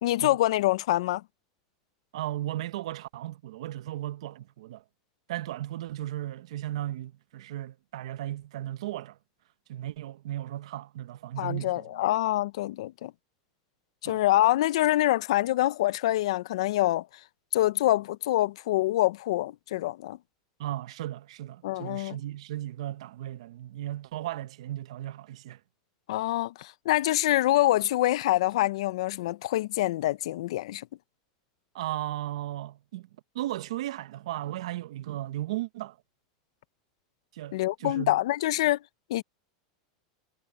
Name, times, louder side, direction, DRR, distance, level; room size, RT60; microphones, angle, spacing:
voice 1, 0.0-1.2 11.4-13.1 14.0-17.1 17.5-20.2 21.6-22.2 26.1-30.9 37.5-38.8 39.1-39.2, left 15 dB, 75° left, 0.5 m, -25 dB
voice 2, 2.1-4.8 5.3-9.2 9.7-11.9 14.0-14.2 20.6-25.6 31.7-33.1 33.3-36.0 37.3-38.2, right 14 dB, 75° right, 0.8 m, -36 dB
supercardioid pair, 170°, 3 cm